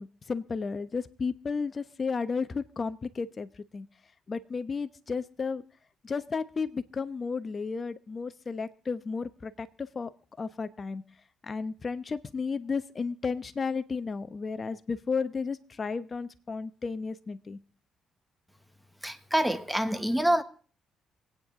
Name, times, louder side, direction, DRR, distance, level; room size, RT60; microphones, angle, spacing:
voice 1, 0.0-3.9 4.3-5.6 6.0-10.1 10.4-11.0 11.4-17.6, left 5 dB, 35° left, 1.0 m, -33 dB
voice 2, 19.0-20.4, right 1 dB, ahead, 1.2 m, -26 dB
26.0 x 9.2 x 3.7 m
cardioid pair, 90°, 0 cm